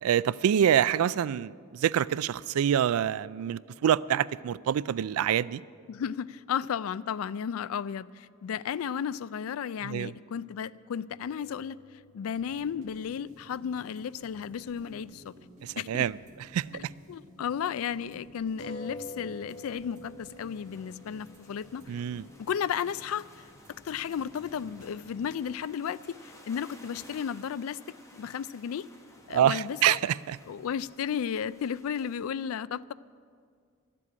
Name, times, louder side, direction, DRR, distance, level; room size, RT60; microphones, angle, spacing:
voice 1, 0.0-5.6 9.8-10.1 15.6-16.1 16.5-16.6 21.9-22.2 29.3-30.4, right 9 dB, 85° right, 0.3 m, -26 dB
voice 2, 5.9-11.8 12.1-15.3 15.8-16.1 17.1-21.8 22.4-23.2 23.8-27.8 28.1-28.9 29.3-30.0 30.5-32.9, left 8 dB, 75° left, 0.3 m, -34 dB
sound 1, 11.1-15.0 15.3-15.4 18.6-23.8, left 1 dB, 55° left, 2.2 m, -49 dB
sound 2, 12.4-25.3, left 1 dB, 35° right, 2.0 m, -54 dB
sound 3, 19.5-32.2, left 1 dB, 15° left, 1.4 m, -56 dB
12.5 x 7.6 x 9.7 m
head